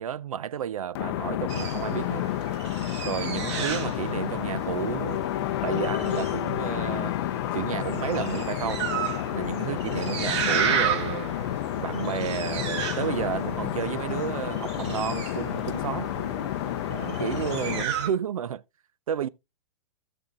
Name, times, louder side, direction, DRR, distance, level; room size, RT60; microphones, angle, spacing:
voice 1, 0.0-2.3 3.0-7.2 7.5-8.9 9.3-11.3 11.8-16.1 16.9-18.6 19.1-19.3, right 9 dB, 85° right, 0.5 m, -32 dB
sound 1, 0.9-17.8, left 14 dB, 45° left, 0.5 m, -30 dB
sound 2, 1.5-18.1, right 7 dB, 55° right, 1.8 m, -34 dB
13.5 x 6.9 x 2.4 m
hypercardioid pair, 135°, 18 cm